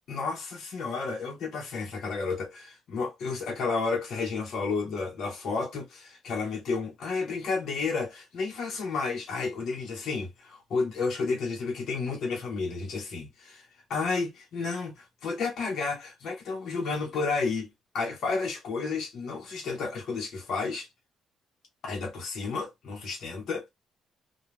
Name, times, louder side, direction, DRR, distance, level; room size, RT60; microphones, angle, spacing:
voice 1, 0.1-20.9 21.8-23.7, left 4 dB, 70° left, 1.0 m, -31 dB
2.4 x 2.4 x 3.1 m
cardioid pair, 90°, 0 cm